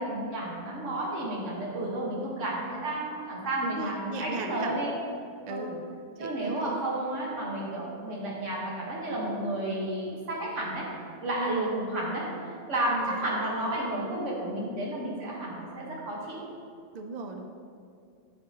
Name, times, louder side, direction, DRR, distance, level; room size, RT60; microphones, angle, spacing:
voice 1, 0.0-4.9 5.5-5.7 6.2-10.9 11.2-12.3 12.7-16.4, right 1 dB, 75° right, -4 dB, 1.6 m, -32 dB
voice 2, 3.6-4.8 5.5-5.9 6.2-6.8 11.4-11.8 12.9-13.2 16.9-17.5, right 3 dB, 55° right, 4 dB, 0.4 m, -36 dB
8.7 x 5.2 x 2.8 m, 2.4 s
omnidirectional pair, 1.3 m